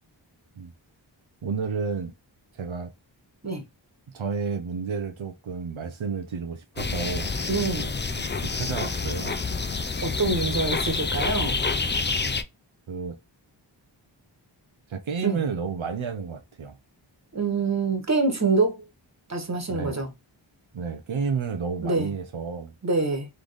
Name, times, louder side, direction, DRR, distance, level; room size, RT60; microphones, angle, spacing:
voice 1, 1.4-2.1 2.5-2.9 4.1-7.4 8.2-9.4 12.9-13.2 14.9-16.8 19.7-20.0 20.7-22.7, right 5 dB, 85° right, 0.7 m, -31 dB
sound 1, 6.8-12.4, left 4 dB, 25° left, 0.4 m, -28 dB
voice 2, 7.5-7.9 10.0-11.6 15.2-15.4 17.3-18.8 19.3-20.1 21.8-22.1 22.8-23.3, right 3 dB, 35° right, 1.4 m, -25 dB
3.9 x 3.3 x 3.4 m
wide cardioid pair, 55°, 46 cm